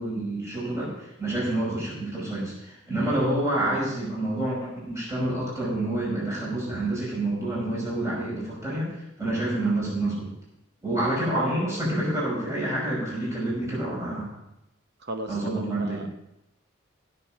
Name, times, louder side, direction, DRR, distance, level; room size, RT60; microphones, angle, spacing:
voice 1, 0.0-10.3 10.8-14.4 15.3-16.1, right 1 dB, 15° right, -6 dB, 5.5 m, -28 dB
voice 2, 15.0-16.1, right 1 dB, 50° right, 6 dB, 0.9 m, -36 dB
16.0 x 6.8 x 5.4 m, 0.87 s
head